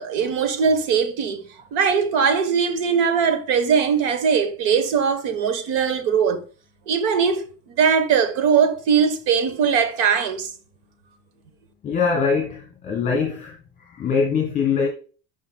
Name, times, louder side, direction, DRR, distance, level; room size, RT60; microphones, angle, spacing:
voice 1, 0.0-1.4 1.7-6.4 6.9-7.5 7.8-10.5, right 6 dB, 90° right, 1.1 m, -20 dB
voice 2, 11.8-13.5 13.9-14.9, left 5 dB, 25° left, 1.2 m, -22 dB
9.5 x 5.5 x 2.2 m
cardioid pair, 155°, 34 cm